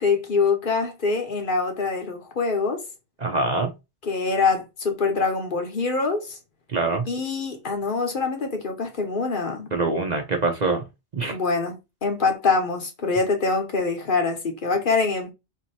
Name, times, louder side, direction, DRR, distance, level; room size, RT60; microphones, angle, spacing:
voice 1, 0.0-2.8 4.0-6.4 7.1-9.7 11.3-15.3, left 4 dB, 50° left, 1.1 m, -24 dB
voice 2, 3.2-3.7 6.7-7.0 9.7-10.8 11.1-11.4, right 3 dB, 45° right, 0.6 m, -24 dB
3.6 x 2.9 x 4.2 m
omnidirectional pair, 1.2 m